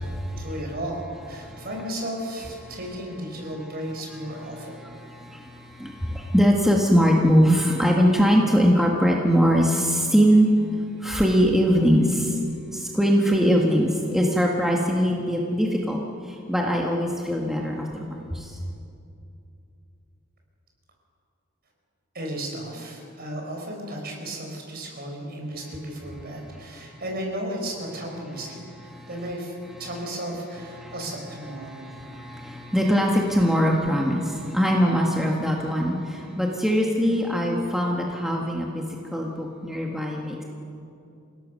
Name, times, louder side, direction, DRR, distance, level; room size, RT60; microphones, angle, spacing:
voice 1, 0.4-4.8 22.1-28.6 29.1-29.5 29.8-31.9, right 1 dB, 50° right, 1 dB, 5.4 m, -34 dB
voice 2, 4.6-10.5 11.0-12.4 12.7-18.6 28.9-29.1 30.8-30.9 31.6-38.8 39.1-40.4, equal, ahead, -1 dB, 1.6 m, -22 dB
29.0 x 17.5 x 6.5 m, 2.6 s
head